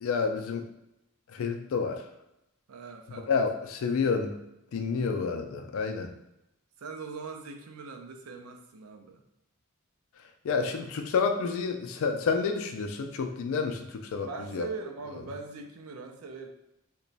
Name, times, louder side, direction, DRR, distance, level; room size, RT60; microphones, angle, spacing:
voice 1, 0.0-0.7 1.3-2.0 3.3-4.4 4.7-6.1 10.4-14.7, left 5 dB, 65° left, 6 dB, 0.3 m, -29 dB
voice 2, 2.7-3.5 6.8-9.2 14.3-16.5, right 4 dB, 80° right, 4 dB, 0.5 m, -41 dB
3.0 x 2.2 x 3.9 m, 0.86 s
head